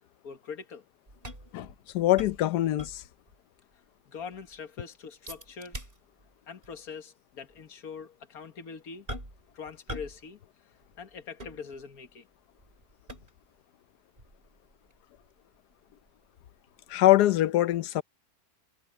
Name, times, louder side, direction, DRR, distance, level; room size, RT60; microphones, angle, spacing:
voice 1, 0.2-0.8 4.1-5.9 6.5-9.1 9.5-10.4 11.0-12.3, left 6 dB, 65° left, 2.0 m, -43 dB
Can of beer, 1.1-3.4 3.7-3.8 4.2-4.6 5.3-6.3 6.6-6.8 7.5-7.6 9.1-9.5 9.9-10.3 10.5-12.1 12.6-13.6 14.2-17.0 17.3-17.4, equal, 35° right, 5.3 m, -44 dB
voice 2, 1.5-3.0 16.9-18.0, left 15 dB, 90° left, 1.2 m, -23 dB
omnidirectional pair, 1.7 m